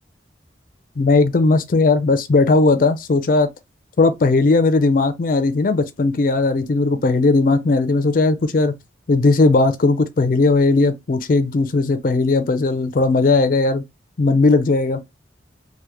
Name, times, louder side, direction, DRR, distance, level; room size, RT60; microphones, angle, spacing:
voice 1, 1.0-3.5 4.0-8.7 9.1-13.8 14.2-15.0, left 3 dB, 45° left, 0.4 m, -17 dB
3.4 x 2.1 x 2.9 m
head